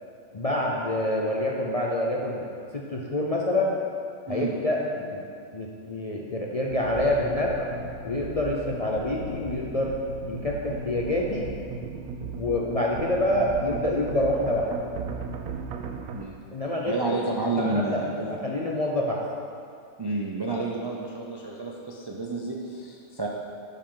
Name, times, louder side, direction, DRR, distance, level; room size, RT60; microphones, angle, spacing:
voice 1, 0.3-2.4 2.7-3.8 4.3-5.3 5.5-7.7 8.0-9.9 10.2-11.5 12.4-14.7 16.5-17.2 17.6-18.0 18.3-19.2, left 1 dB, 40° left, -2 dB, 0.5 m, -27 dB
sound 1, 6.7-16.2, right 5 dB, 90° right, 1.1 m, -36 dB
voice 2, 16.9-18.3 20.0-23.3, right 2 dB, 40° right, -2 dB, 0.3 m, -30 dB
9.3 x 7.4 x 3.9 m, 2.3 s
omnidirectional pair, 1.5 m